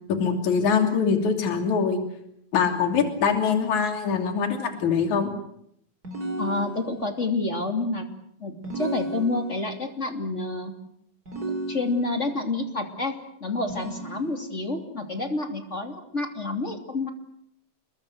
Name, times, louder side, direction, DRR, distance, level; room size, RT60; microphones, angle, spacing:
voice 1, 0.1-2.0 2.5-5.3, left 6 dB, 55° left, 6 dB, 4.1 m, -23 dB
sound 1, 6.0-7.2 8.6-9.8 11.3-12.3 13.7-14.7, right 2 dB, 25° right, 4.5 m, -34 dB
voice 2, 6.4-8.1 8.4-10.7 11.7-17.1, left 2 dB, 20° left, 5 dB, 2.7 m, -29 dB
29.0 x 22.0 x 8.1 m, 0.72 s
omnidirectional pair, 4.3 m